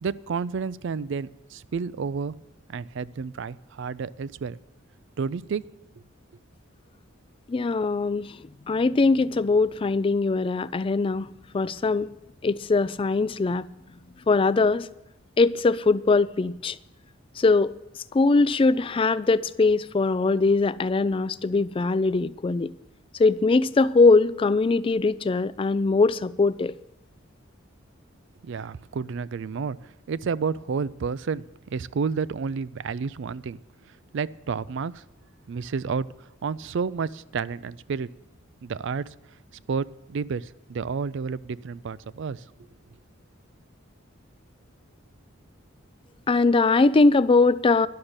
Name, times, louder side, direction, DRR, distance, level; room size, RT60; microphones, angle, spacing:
voice 1, 0.0-2.3 2.7-4.6 5.2-5.6 28.4-31.4 31.7-33.6 34.1-35.0 35.5-38.1 38.6-39.1 39.7-42.4, right 5 dB, 60° right, 0.4 m, -30 dB
voice 2, 7.5-8.4 8.7-11.3 11.5-12.1 12.4-13.7 14.3-14.9 15.4-16.8 17.4-17.7 18.1-22.7 23.2-26.7 46.3-47.9, left 3 dB, 25° left, 0.3 m, -21 dB
11.5 x 6.6 x 8.8 m
head